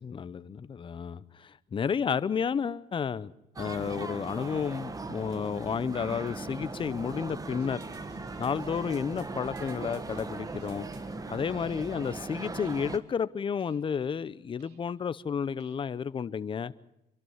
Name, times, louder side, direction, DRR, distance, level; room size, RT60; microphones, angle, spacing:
voice 1, 0.0-3.3 3.6-7.8 8.4-10.9 11.3-16.7, left 6 dB, 30° left, 0.7 m, -31 dB
sound 1, 3.6-13.0, right 3 dB, 20° right, 1.3 m, -39 dB
sound 2, 7.5-11.1 11.6-12.1 12.6-13.0 13.6-14.1 14.6-15.1 15.6-16.1, right 7 dB, 85° right, 2.5 m, -61 dB
26.0 x 12.0 x 9.4 m
cardioid pair, 110°, 17 cm